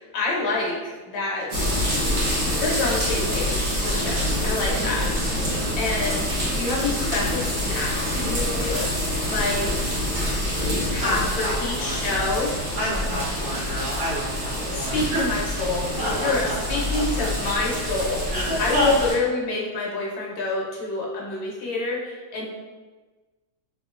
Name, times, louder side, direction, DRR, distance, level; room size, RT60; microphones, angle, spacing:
voice 1, 0.0-1.8 2.6-8.9 9.2-9.7 10.9-12.5 14.7-15.9 16.1-22.4, left 3 dB, 70° left, -3 dB, 1.5 m, -27 dB
sound 1, 1.5-19.1, equal, 40° right, 0.8 m, -26 dB
voice 2, 4.0-4.4 10.6-12.5 12.7-15.2 16.0-17.3 18.3-19.1, equal, 65° right, -8 dB, 1.3 m, -30 dB
3.3 x 2.9 x 2.4 m, 1.3 s
omnidirectional pair, 2.2 m